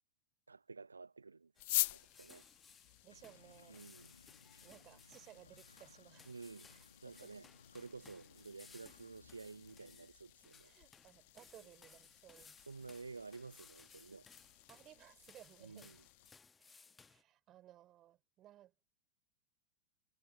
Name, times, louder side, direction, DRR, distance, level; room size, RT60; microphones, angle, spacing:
voice 1, 0.5-2.5 3.7-4.1 6.3-6.7 7.0-7.5 7.7-10.7 12.7-14.3 15.6-16.0, right 4 dB, 80° right, 0.5 m, -52 dB
sound 1, 1.6-16.3, left 22 dB, 50° left, 0.8 m, -47 dB
sound 2, 1.6-17.2, left 5 dB, 15° left, 1.2 m, -63 dB
voice 2, 3.0-3.8 4.6-6.3 6.7-6.8 7.1-7.3 10.6-12.6 14.7-16.0 16.6-18.7, right 13 dB, 30° right, 4.2 m, -60 dB
sound 3, 3.1-10.1, left 4 dB, 75° left, 1.4 m, -64 dB
figure-of-eight pair, 90°, 0 cm